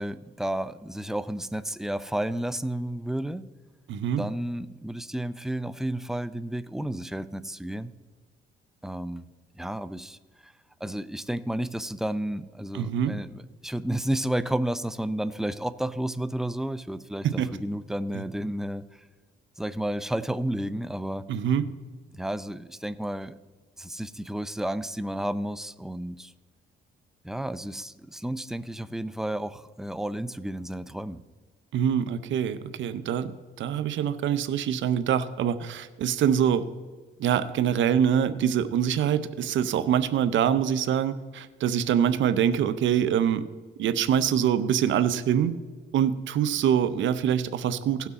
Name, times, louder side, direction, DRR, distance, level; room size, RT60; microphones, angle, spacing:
voice 1, 0.0-3.4 4.2-7.9 8.8-9.3 9.6-10.5 10.8-19.1 19.6-21.3 22.1-23.4 23.8-26.3 27.2-31.2, right 1 dB, ahead, 14 dB, 0.4 m, -32 dB
voice 2, 3.9-4.2 12.7-13.1 17.2-17.5 18.1-18.2 21.3-21.7 31.7-33.3 33.6-36.7 37.2-43.4 43.8-45.5 45.9-48.1, right 9 dB, 70° right, 13 dB, 0.7 m, -24 dB
16.5 x 6.1 x 4.1 m, 1.4 s
cardioid pair, 90°, 20 cm